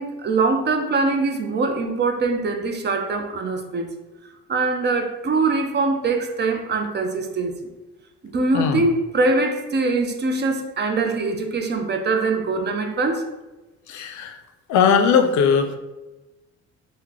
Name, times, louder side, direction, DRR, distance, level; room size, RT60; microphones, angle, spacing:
voice 1, 0.0-3.9 4.5-7.6 8.3-13.2, right 3 dB, 35° right, 5 dB, 0.4 m, -23 dB
voice 2, 13.9-14.4 14.7-15.7, left 6 dB, 70° left, 7 dB, 0.5 m, -19 dB
3.1 x 2.1 x 3.5 m, 1.1 s
cardioid pair, 90°, 30 cm